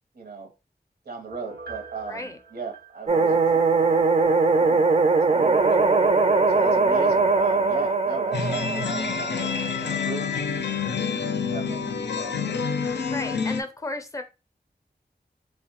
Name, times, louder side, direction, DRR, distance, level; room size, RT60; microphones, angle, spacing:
voice 1, 0.1-0.5 1.0-3.4 4.6-5.0 5.3-5.8 6.5-9.0 9.4-9.5 9.8-12.8, right 4 dB, 70° right, 0.7 m, -38 dB
Piano, 1.3-4.0 4.3-4.4, right 4 dB, 85° right, 1.1 m, -44 dB
sound 1, 3.1-10.0, right 3 dB, 40° right, 0.4 m, -21 dB
voice 2, 6.6-7.1 13.1-14.2, left 2 dB, 20° left, 0.5 m, -34 dB
sound 2, 8.3-13.6, left 5 dB, 90° left, 0.4 m, -28 dB
3.0 x 2.1 x 2.9 m
wide cardioid pair, 50°, 17 cm